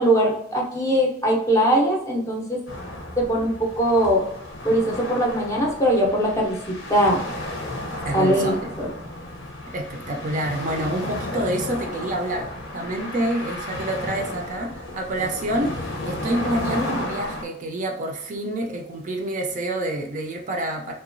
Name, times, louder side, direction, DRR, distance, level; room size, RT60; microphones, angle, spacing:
voice 1, 0.0-2.6 3.2-4.2 4.6-7.2 8.1-8.9, right 1 dB, 15° left, -2 dB, 0.5 m, -21 dB
sound 1, 2.7-17.4, left 1 dB, 75° left, 0.7 m, -33 dB
voice 2, 8.0-8.7 9.7-20.9, right 1 dB, 40° right, 2 dB, 0.4 m, -27 dB
2.9 x 2.2 x 2.5 m, 0.75 s
head